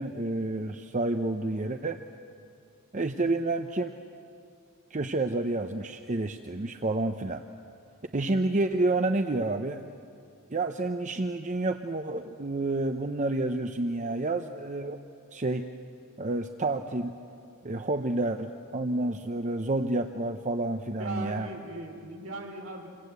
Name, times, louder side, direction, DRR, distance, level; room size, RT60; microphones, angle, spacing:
voice 1, 0.0-2.0 2.9-3.9 4.9-7.4 8.1-9.8 10.5-15.0 15.3-15.7 16.2-17.2 17.6-21.5, right 2 dB, 35° right, 7 dB, 0.8 m, -29 dB
voice 2, 21.0-22.9, right 2 dB, 65° right, 1 dB, 4.1 m, -38 dB
28.0 x 25.0 x 8.2 m, 2.5 s
head